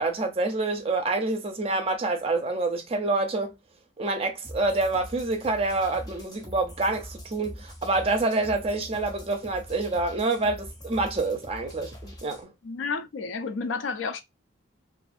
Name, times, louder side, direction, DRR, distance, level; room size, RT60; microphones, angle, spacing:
voice 1, 0.0-3.5 4.0-12.5, right 2 dB, 30° right, 0.5 m, -27 dB
sound 1, 4.4-12.4, equal, 20° left, 0.6 m, -43 dB
voice 2, 12.6-14.2, left 4 dB, 75° left, 0.4 m, -31 dB
2.5 x 2.5 x 2.5 m
head